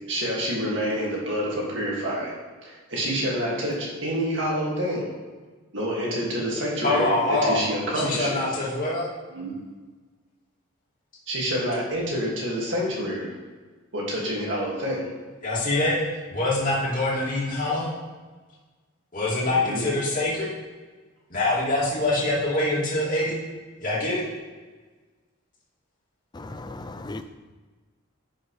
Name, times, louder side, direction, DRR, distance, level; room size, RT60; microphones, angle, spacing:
voice 1, 0.1-5.1 5.7-8.4 9.3-9.5 11.3-13.3 13.9-15.1 19.4-19.8, equal, 60° right, -4 dB, 2.2 m, -28 dB
voice 2, 6.8-7.7 7.9-9.1 15.4-16.0 16.3-17.9 19.1-20.5 21.3-23.3 23.8-24.2, left 2 dB, 40° left, -7 dB, 2.6 m, -24 dB
voice 3, 26.3-27.2, left 2 dB, 20° left, 9 dB, 0.4 m, -36 dB
10.0 x 6.0 x 3.3 m, 1.3 s
head